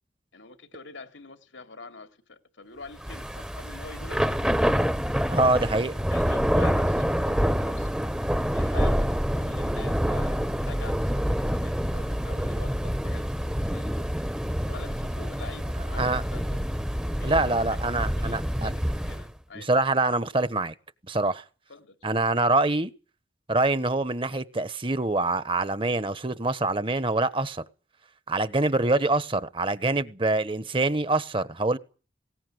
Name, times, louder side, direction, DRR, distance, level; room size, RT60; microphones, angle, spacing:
voice 1, 0.3-4.9 6.0-7.9 8.5-14.1 14.7-16.7 17.2-17.8 18.2-19.7 21.7-22.1, left 3 dB, 90° left, 2.9 m, -45 dB
Thunder / Rain, 3.0-19.3, equal, 5° right, 1.0 m, -27 dB
voice 2, 5.3-5.9 16.0-16.2 17.2-18.7 19.5-20.7 21.1-21.4 22.0-22.9 23.5-27.6 28.3-31.8, right 2 dB, 30° right, 1.2 m, -25 dB
20.0 x 18.5 x 8.0 m
head